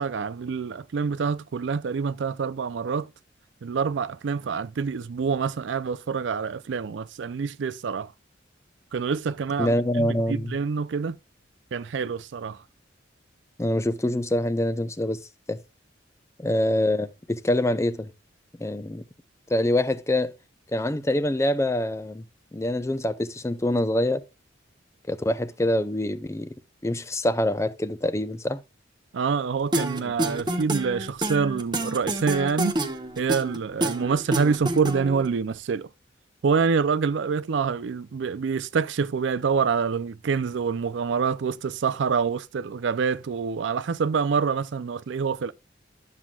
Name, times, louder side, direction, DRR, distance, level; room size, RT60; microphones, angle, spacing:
voice 1, 0.0-3.1 3.6-8.1 8.9-11.2 11.7-12.6 29.1-32.8 33.2-35.9 36.4-45.5, right 5 dB, 70° right, 0.4 m, -26 dB
voice 2, 9.6-10.5 13.6-15.2 15.5-15.6 16.4-18.1 18.6-19.0 19.5-20.3 20.7-22.2 22.5-24.2 25.1-26.5 26.8-28.6, left 1 dB, 15° left, 0.5 m, -25 dB
sound 1, 29.7-35.3, right 1 dB, 25° right, 0.9 m, -28 dB
11.5 x 7.5 x 2.3 m
head